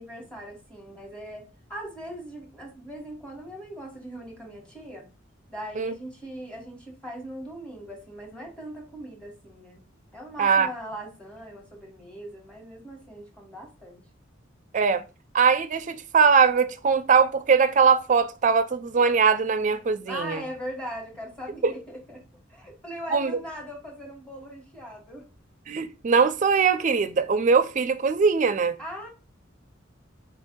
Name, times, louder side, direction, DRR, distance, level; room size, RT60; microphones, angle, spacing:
voice 1, 0.0-5.1 5.5-9.8 10.1-14.0 20.1-22.2 22.5-25.3 28.8-29.1, equal, 5° left, 1.4 m, -40 dB
voice 2, 15.3-20.4 21.6-21.7 23.1-23.3 25.7-28.8, right 5 dB, 40° right, 0.4 m, -21 dB
4.5 x 2.6 x 3.7 m
head